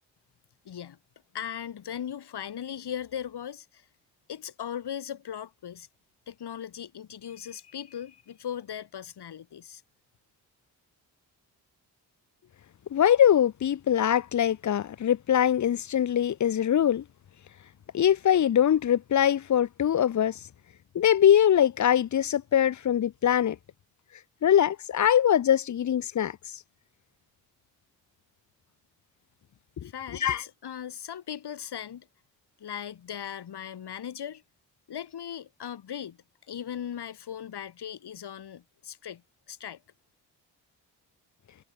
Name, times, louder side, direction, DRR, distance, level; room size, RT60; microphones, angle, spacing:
voice 1, 0.7-1.0 1.3-3.8 4.3-5.9 6.3-9.8 29.8-32.1 32.6-34.4 34.9-36.2 36.5-39.2 39.5-39.8, left 9 dB, 65° left, 2.3 m, -38 dB
voice 2, 12.9-17.0 17.9-20.4 20.9-23.6 24.4-26.4 29.8-30.4, left 10 dB, 40° left, 0.7 m, -23 dB
supercardioid pair, 45°, 43 cm